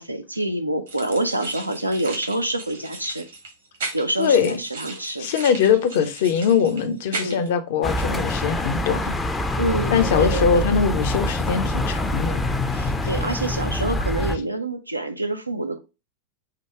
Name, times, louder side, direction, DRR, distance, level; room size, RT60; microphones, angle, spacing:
voice 1, 0.0-3.3 3.9-5.3 7.1-7.4 9.6-10.8 12.7-15.8, right 1 dB, 85° right, 0.5 m, -27 dB
sound 1, 0.9-7.5, right 3 dB, 70° right, 1.4 m, -36 dB
voice 2, 4.2-4.5 5.2-9.1 9.9-12.4 13.0-13.1, left 7 dB, 55° left, 0.6 m, -21 dB
sound 2, 7.8-14.4, left 1 dB, 10° left, 0.5 m, -25 dB
4.7 x 2.2 x 4.6 m
figure-of-eight pair, 90°, 0 cm